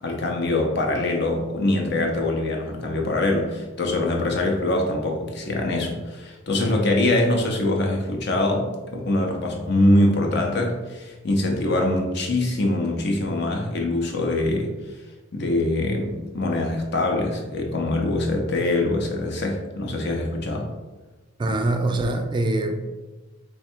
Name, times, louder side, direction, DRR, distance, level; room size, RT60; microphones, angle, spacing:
voice 1, 0.0-14.8 15.3-20.7, left 1 dB, 55° left, 2 dB, 0.6 m, -23 dB
voice 2, 21.4-22.9, right 2 dB, 25° right, 6 dB, 0.3 m, -23 dB
3.2 x 2.4 x 4.4 m, 1.2 s
head